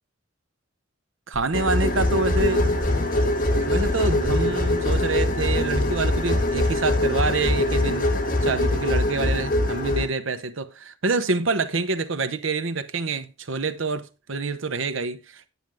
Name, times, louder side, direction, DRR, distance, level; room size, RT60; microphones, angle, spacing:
sound 1, 1.3-7.1, equal, 20° right, 2.7 m, -37 dB
voice 1, 1.3-2.7 3.5-8.1 8.4-15.5, right 3 dB, 80° right, 0.9 m, -27 dB
sound 2, 1.5-10.1, left 1 dB, 45° left, 1.6 m, -23 dB
9.5 x 9.2 x 3.5 m
head